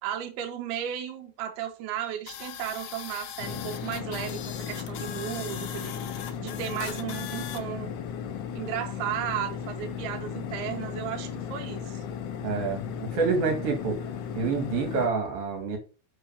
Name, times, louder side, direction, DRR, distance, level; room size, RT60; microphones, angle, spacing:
voice 1, 0.0-7.9 8.6-12.0, right 10 dB, 80° right, 2.8 m, -35 dB
sound 1, 2.3-7.6, left 10 dB, 90° left, 1.6 m, -40 dB
sound 2, 3.4-15.1, left 8 dB, 70° left, 2.0 m, -36 dB
voice 2, 12.4-14.0 14.3-15.8, right 4 dB, 45° right, 2.4 m, -27 dB
6.4 x 5.1 x 5.2 m
omnidirectional pair, 4.6 m